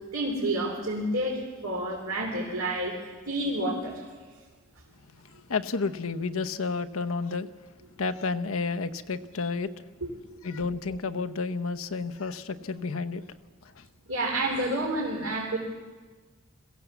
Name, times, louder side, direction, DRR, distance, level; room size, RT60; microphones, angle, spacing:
voice 1, 0.1-3.0 3.3-4.0 10.0-10.1 14.1-15.6, right 1 dB, 85° right, -3 dB, 3.5 m, -29 dB
voice 2, 5.5-7.5 8.0-9.7 10.4-13.2 13.8-13.9, left 4 dB, 75° left, 8 dB, 0.8 m, -31 dB
21.5 x 15.5 x 8.1 m, 1.4 s
head